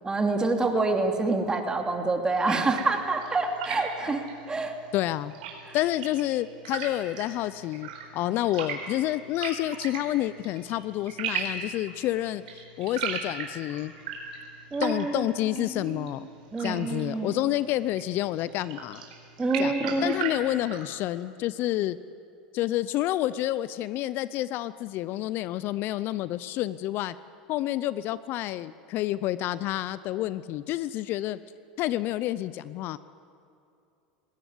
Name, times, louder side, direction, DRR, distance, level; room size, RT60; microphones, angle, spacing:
voice 1, 0.0-4.2 4.5-4.7 5.7-5.8 14.7-15.3 15.7-16.1 16.5-17.3 19.4-20.1, right 3 dB, 15° right, 3 dB, 2.9 m, -27 dB
sound 1, 2.5-20.9, right 6 dB, 75° right, 4.4 m, -39 dB
voice 2, 4.9-5.3 5.7-13.9 14.8-16.3 16.6-19.1 19.6-22.0 22.5-27.2 27.5-31.4 31.8-33.0, left 14 dB, 50° left, 16 dB, 0.6 m, -29 dB
20.5 x 17.0 x 9.6 m, 2.6 s
hypercardioid pair, 95°, 5 cm